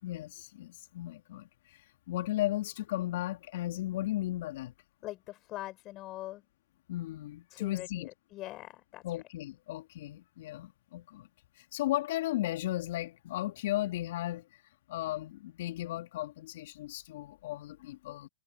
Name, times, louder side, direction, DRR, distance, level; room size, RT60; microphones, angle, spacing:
voice 1, 0.0-1.5 2.1-4.7 6.9-8.1 9.0-11.3 11.6-14.5 14.9-18.3, left 15 dB, 55° left, 3.0 m, -35 dB
voice 2, 5.0-6.4 7.5-9.0, left 17 dB, 30° left, 6.6 m, -43 dB
hypercardioid pair, 125°, 0 cm